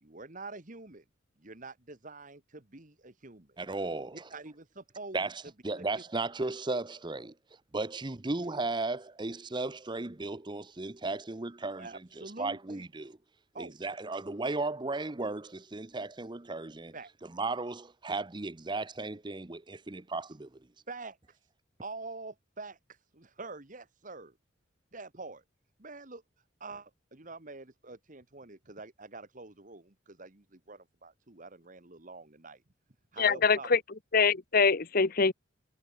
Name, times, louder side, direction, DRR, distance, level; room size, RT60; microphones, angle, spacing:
voice 1, 0.0-1.0 1.4-3.5 4.1-5.2 5.7-5.8 11.8-12.8 13.5-13.8 16.9-17.1 20.9-21.4 21.8-24.3 24.9-25.4 25.8-26.2 26.6-32.6 33.1-33.8, right 3 dB, 40° right, 1.8 m, -46 dB
voice 2, 3.6-4.3 5.1-7.3 7.7-11.9 12.2-13.2 13.6-16.9 17.3-20.5, right 3 dB, 25° right, 0.7 m, -35 dB
voice 3, 33.2-33.8 34.1-35.3, left 5 dB, 50° left, 1.0 m, -24 dB
head